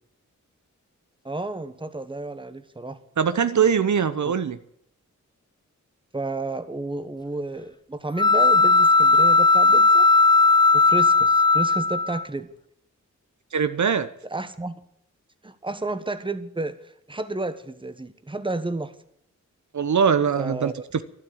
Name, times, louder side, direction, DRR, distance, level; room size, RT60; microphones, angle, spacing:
voice 1, 1.2-3.0 4.2-4.3 6.1-10.1 10.7-12.5 14.3-14.8 15.4-18.9 20.4-20.8, right 2 dB, 15° right, 11 dB, 1.3 m, -31 dB
voice 2, 3.2-4.6 13.5-14.1 19.7-21.0, right 7 dB, 65° right, 12 dB, 0.9 m, -22 dB
sound 1, 8.2-12.2, left 3 dB, 15° left, 0.6 m, -17 dB
12.0 x 12.0 x 8.6 m, 0.71 s
wide cardioid pair, 80°, 31 cm